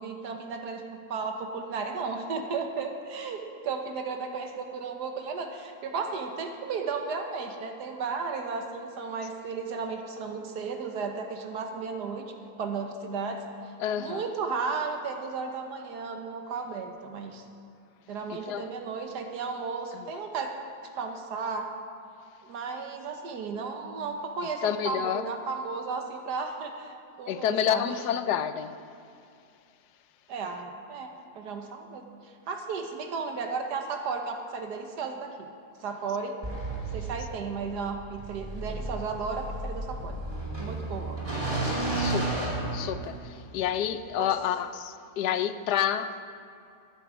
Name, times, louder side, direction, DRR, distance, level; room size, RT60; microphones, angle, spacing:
voice 1, 0.0-17.5 18.1-20.5 20.8-21.7 22.4-27.9 30.3-35.5 35.8-36.3 36.9-40.2 40.6-41.2 44.2-44.3, right 4 dB, 85° right, 4 dB, 1.6 m, -34 dB
voice 2, 13.8-14.2 18.3-18.7 19.9-20.1 24.6-25.3 27.3-28.8 42.0-46.2, left 9 dB, 85° left, 11 dB, 1.2 m, -29 dB
sound 1, 36.4-43.4, right 2 dB, 20° right, 2.3 m, -33 dB
12.0 x 11.5 x 5.0 m, 2.5 s
omnidirectional pair, 1.7 m